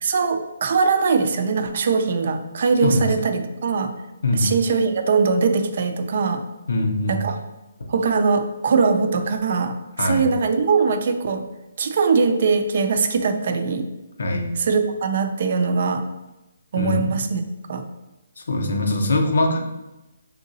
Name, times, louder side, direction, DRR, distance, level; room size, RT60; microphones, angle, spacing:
voice 1, 0.0-3.9 4.4-6.5 7.1-7.4 7.9-11.4 11.8-13.9 14.6-16.1 16.7-17.4 17.7-17.8, right 5 dB, 55° right, 7 dB, 0.4 m, -21 dB
voice 2, 4.2-4.5 6.7-7.2 10.0-10.3 14.2-14.6 16.8-17.1 18.4-19.6, left 2 dB, 75° left, 2 dB, 0.7 m, -22 dB
3.6 x 2.7 x 2.7 m, 0.99 s
hypercardioid pair, 155°, 0 cm